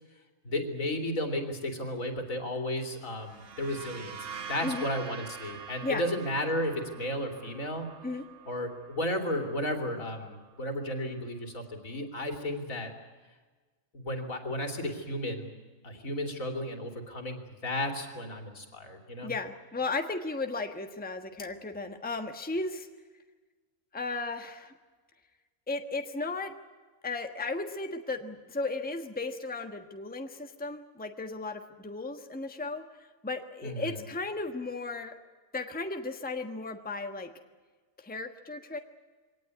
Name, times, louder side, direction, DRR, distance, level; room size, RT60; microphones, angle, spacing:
voice 1, 0.4-4.2 4.5-7.9 8.5-12.9 13.9-15.5 15.8-19.3 33.6-34.0, left 1 dB, 70° left, 4 dB, 3.3 m, -33 dB
sound 1, 3.1-10.7, right 7 dB, 60° right, 1.6 m, -45 dB
voice 2, 19.2-22.9 23.9-24.7 25.7-26.5 27.0-35.1 35.5-37.3 38.0-38.8, left 3 dB, 5° left, 6 dB, 1.2 m, -35 dB
24.0 x 18.0 x 9.5 m, 1.4 s
omnidirectional pair, 1.5 m